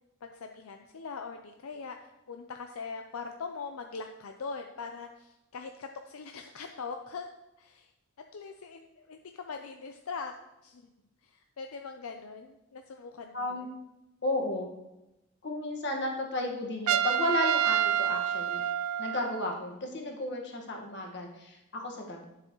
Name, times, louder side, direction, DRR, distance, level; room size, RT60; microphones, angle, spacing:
voice 1, 0.2-7.3 7.6-7.9 8.3-10.3 10.6-10.9 11.2-13.7, left 5 dB, 80° left, 5 dB, 0.5 m, -42 dB
voice 2, 13.3-13.7 14.2-14.7 15.4-18.6 19.0-22.2, left 1 dB, 55° left, 1 dB, 1.6 m, -33 dB
Trumpet, 16.9-19.5, right 9 dB, 85° right, 0.3 m, -28 dB
10.5 x 7.5 x 3.0 m, 0.94 s
head